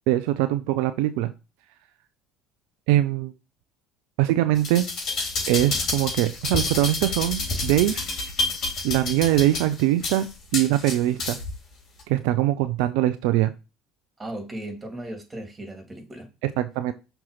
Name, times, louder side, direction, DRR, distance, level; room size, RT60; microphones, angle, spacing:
voice 1, 0.1-1.3 2.9-3.3 4.2-4.9 5.5-8.1 8.8-10.3 10.5-11.4 12.1-13.5 16.4-16.9, right 14 dB, 70° right, 0.5 m, -22 dB
sound 1, 4.6-11.6 12.0-12.1, left 3 dB, 50° left, 3.6 m, -29 dB
voice 2, 14.2-16.3, right 1 dB, 20° right, 2.8 m, -36 dB
6.1 x 4.5 x 5.7 m
hypercardioid pair, 65°, 0 cm